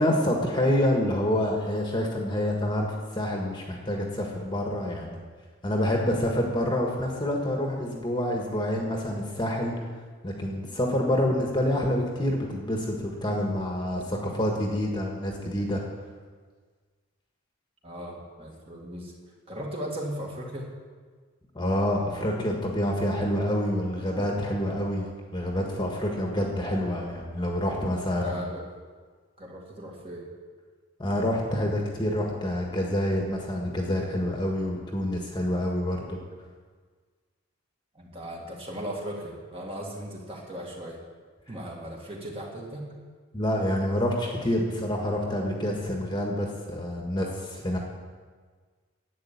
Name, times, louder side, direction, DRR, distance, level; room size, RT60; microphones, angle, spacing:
voice 1, 0.0-5.2 5.6-9.7 10.2-15.8 21.5-28.4 31.0-36.2 43.3-47.8, left 1 dB, 20° left, 0 dB, 1.5 m, -27 dB
voice 2, 17.8-19.1 19.5-20.7 28.1-28.6 29.4-30.3 37.9-41.0 41.5-42.8, equal, 25° right, -2 dB, 2.2 m, -37 dB
11.5 x 8.6 x 8.4 m, 1.5 s
head